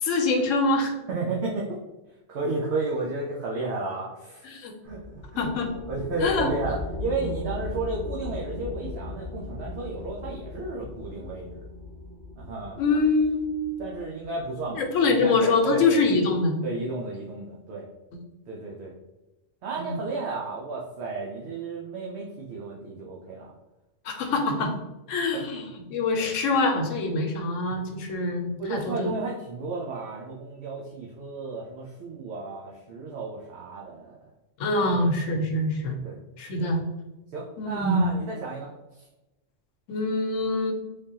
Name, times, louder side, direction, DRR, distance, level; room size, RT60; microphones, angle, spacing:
voice 1, 0.0-0.9 4.4-4.7 5.4-5.7 6.2-6.5 12.8-13.6 14.7-16.6 19.8-20.0 24.0-24.7 25.1-29.1 34.6-36.0 36.4-36.8 37.6-38.1 39.9-40.7, left 3 dB, 90° left, 4 dB, 1.0 m, -24 dB
voice 2, 1.1-1.8 2.3-4.5 4.8-5.5 5.9-11.6 12.4-12.8 13.8-16.2 16.6-17.9 18.5-18.9 19.6-23.5 25.3-25.5 26.1-26.3 28.6-34.3 34.9-35.0 36.0-36.2 36.6-36.7 37.3-39.0, right 3 dB, 65° right, -3 dB, 0.8 m, -33 dB
sound 1, 4.8-14.9, left 2 dB, 35° left, 0.5 m, -38 dB
3.4 x 3.3 x 2.8 m, 1.0 s
omnidirectional pair, 1.3 m